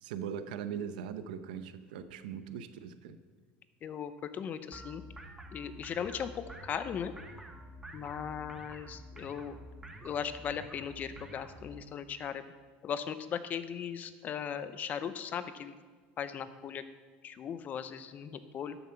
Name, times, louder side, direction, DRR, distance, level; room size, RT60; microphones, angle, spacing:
voice 1, 0.0-3.2, right 8 dB, 90° right, 11 dB, 0.8 m, -40 dB
voice 2, 3.8-5.0 5.5-7.1 7.9-9.6 10.0-12.4 12.8-15.7 16.2-16.8 17.2-18.8, left 8 dB, 35° left, 12 dB, 0.8 m, -38 dB
sound 1, 4.7-11.8, right 1 dB, 10° right, 1.0 m, -49 dB
13.0 x 7.2 x 5.7 m, 1.5 s
supercardioid pair, 120°, 5 cm